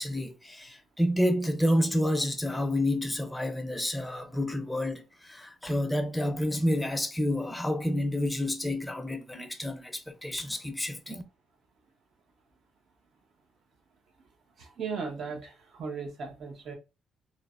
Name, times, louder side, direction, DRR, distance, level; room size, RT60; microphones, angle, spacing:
voice 1, 0.0-11.2, left 1 dB, 10° left, 0.6 m, -29 dB
voice 2, 14.6-16.7, right 5 dB, 60° right, 0.9 m, -37 dB
3.1 x 2.0 x 2.4 m
cardioid pair, 90°, 0 cm